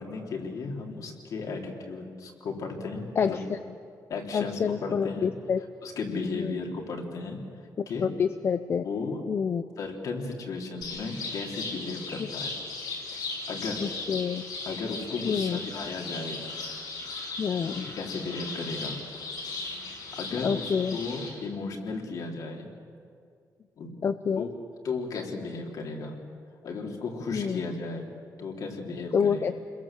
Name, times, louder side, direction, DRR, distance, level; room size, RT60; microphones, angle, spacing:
voice 1, 0.0-3.4 4.1-5.3 5.8-7.4 7.9-8.1 8.8-9.2 9.8-12.6 13.1-13.2 13.5-13.9 14.6-16.4 18.0-19.0 20.2-22.7 23.8-23.9 24.4-24.5 24.8-26.2 26.6-28.1 28.4-29.4, left 4 dB, 60° left, 1 dB, 3.5 m, -35 dB
voice 2, 3.2-3.6 4.3-5.6 6.4-6.5 8.0-8.8 9.3-9.6 13.8-14.4 15.2-15.6 17.4-17.9 20.4-21.0 24.0-24.5 27.3-27.6 29.1-29.5, left 6 dB, 40° left, 10 dB, 0.6 m, -27 dB
sound 1, 10.8-21.3, left 3 dB, 85° left, 6.5 m, -37 dB
29.5 x 22.0 x 7.5 m, 2.3 s
wide cardioid pair, 180°, 7 cm